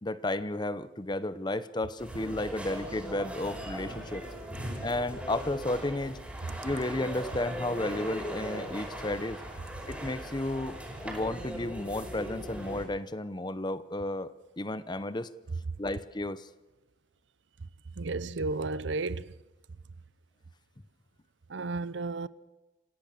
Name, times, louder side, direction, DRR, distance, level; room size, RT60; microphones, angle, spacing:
voice 1, 0.0-4.2 4.8-6.2 6.6-9.4 9.9-10.8 11.0-15.3 15.8-16.5, left 2 dB, 25° left, 0.8 m, -33 dB
sound 1, 2.0-12.8, equal, 5° right, 5.5 m, -39 dB
voice 2, 18.0-19.3 21.5-22.3, right 3 dB, 85° right, 0.7 m, -33 dB
27.0 x 16.5 x 6.8 m
head